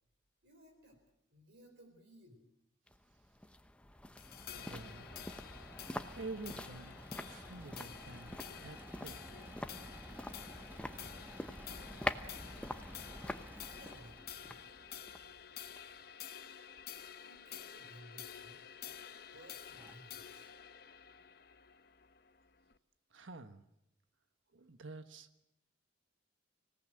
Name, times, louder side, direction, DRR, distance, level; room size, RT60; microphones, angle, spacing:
voice 1, 0.4-1.0 1.3-2.5 11.0-11.2 11.6-11.8 13.5-14.7 17.2-20.6 21.2-21.3, equal, 65° right, 2 dB, 4.6 m, -60 dB
sound 1, 2.9-16.0 16.3-16.4, left 1 dB, 5° left, 0.8 m, -46 dB
sound 2, 4.2-22.8, left 9 dB, 50° left, 0.8 m, -51 dB
voice 2, 4.5-5.1 6.2-6.9 7.2-9.2 23.1-23.6 24.5-25.4, right 3 dB, 80° right, 9 dB, 1.3 m, -48 dB
Engine / Mechanisms, 5.0-15.1 16.7-17.4 18.0-18.1 18.4-18.5 19.3-19.4 19.7-20.0, right 1 dB, 10° right, 1.0 m, -58 dB
25.5 x 17.5 x 7.8 m, 0.83 s
head